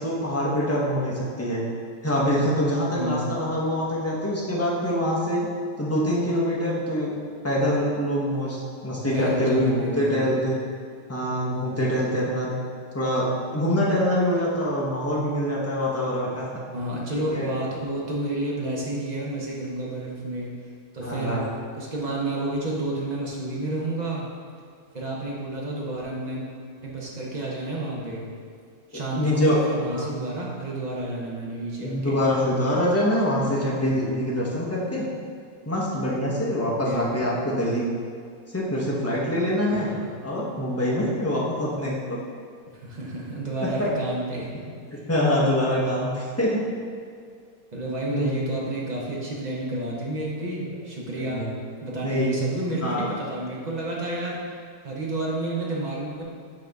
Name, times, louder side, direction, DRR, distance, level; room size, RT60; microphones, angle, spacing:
voice 1, 0.0-1.7 2.0-5.5 5.8-7.1 7.4-9.7 10.0-10.5 11.1-12.5 12.9-16.5 17.3-17.5 21.0-21.5 29.1-29.6 29.9-30.0 31.8-35.1 35.7-37.8 38.5-39.9 40.2-42.0 43.6-43.9 45.1-46.6 48.1-48.4 51.3-51.5 52.0-52.3 52.8-53.1, equal, 25° left, -6 dB, 0.3 m, -24 dB
voice 2, 2.9-3.3 9.1-10.6 16.7-20.5 20.9-21.4 21.7-24.3 24.9-26.5 26.8-28.2 28.9-32.2 33.9-34.1 36.8-37.3 39.7-40.1 42.8-44.5 44.9-45.0 47.7-51.4 51.8-54.4 54.8-56.2, right 1 dB, 35° right, -4 dB, 0.7 m, -30 dB
6.9 x 3.9 x 3.4 m, 2.2 s
omnidirectional pair, 1.8 m